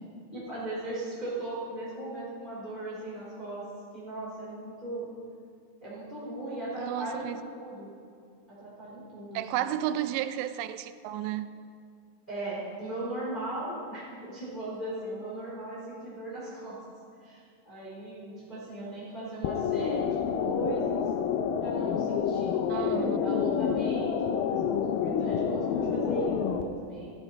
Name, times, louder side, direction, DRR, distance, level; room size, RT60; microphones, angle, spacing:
voice 1, 0.3-3.6 3.9-5.1 5.8-7.9 8.5-9.7 12.3-16.8 17.2-21.1 21.6-27.1, right 2 dB, 10° left, -8 dB, 3.7 m, -38 dB
voice 2, 6.8-7.4 9.3-11.5 22.7-23.2, right 12 dB, 90° right, 12 dB, 2.8 m, -32 dB
sound 1, 19.4-26.6, left 7 dB, 90° left, 2.0 m, -28 dB
14.0 x 13.0 x 4.6 m, 2.3 s
omnidirectional pair, 4.9 m